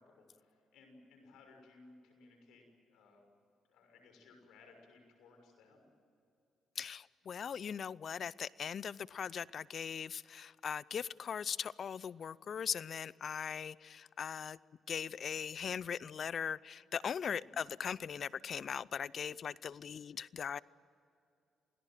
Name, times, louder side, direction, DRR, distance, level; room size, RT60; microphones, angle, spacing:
voice 1, 0.0-3.2 3.7-5.8 17.4-17.5, left 3 dB, 85° left, 4 dB, 6.4 m, -61 dB
voice 2, 6.8-14.6 14.9-20.6, left 7 dB, 55° left, 21 dB, 0.5 m, -40 dB
27.5 x 18.0 x 9.2 m, 2.5 s
cardioid pair, 90°, 0 cm